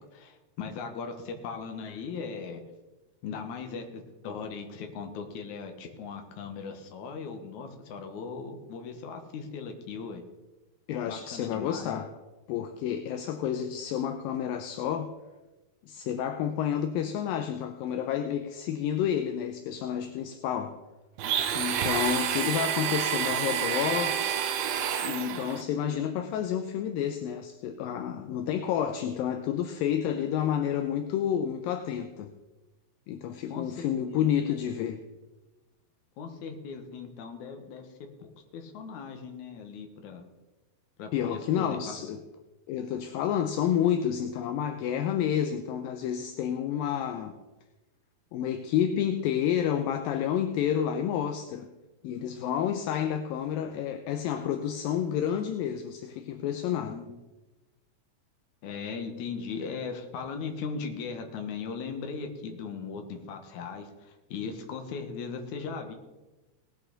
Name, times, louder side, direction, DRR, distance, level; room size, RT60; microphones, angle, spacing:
voice 1, 0.0-2.6 3.2-10.2 11.1-11.9 33.5-34.3 36.2-37.9 38.2-40.3 41.0-42.0 56.9-57.1 58.6-65.9, left 5 dB, 60° left, 4 dB, 2.4 m, -38 dB
voice 2, 10.9-12.1 12.5-15.1 15.9-20.8 21.5-24.2 25.0-32.3 33.1-35.0 41.1-42.2 42.7-47.4 48.3-51.7 52.0-57.0, left 9 dB, 80° left, 7 dB, 2.3 m, -30 dB
Domestic sounds home sounds, 21.2-25.6, right 9 dB, 80° right, 2.6 m, -29 dB
18.5 x 8.4 x 4.0 m, 1.1 s
omnidirectional pair, 4.3 m